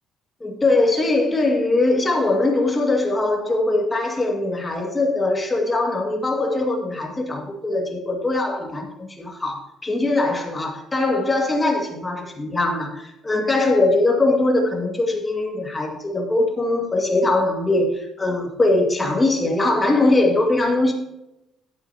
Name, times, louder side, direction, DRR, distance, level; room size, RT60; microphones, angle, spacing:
voice 1, 0.4-20.9, left 2 dB, 15° left, 0 dB, 2.1 m, -21 dB
11.5 x 8.7 x 2.9 m, 0.87 s
cardioid pair, 130°, 0 cm